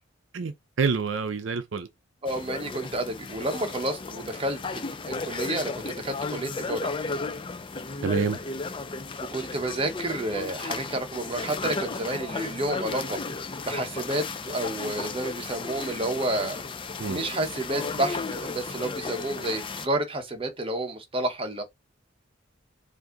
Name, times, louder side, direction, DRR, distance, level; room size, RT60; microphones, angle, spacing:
voice 1, 0.3-1.9 8.0-8.4 17.0-17.2, right 5 dB, 65° right, 0.5 m, -27 dB
voice 2, 2.2-6.9 9.3-13.2 13.6-16.6 17.1-21.6, right 1 dB, 25° right, 0.9 m, -30 dB
sound 1, 2.3-19.9, left 4 dB, 25° left, 0.5 m, -34 dB
4.8 x 2.6 x 3.8 m
head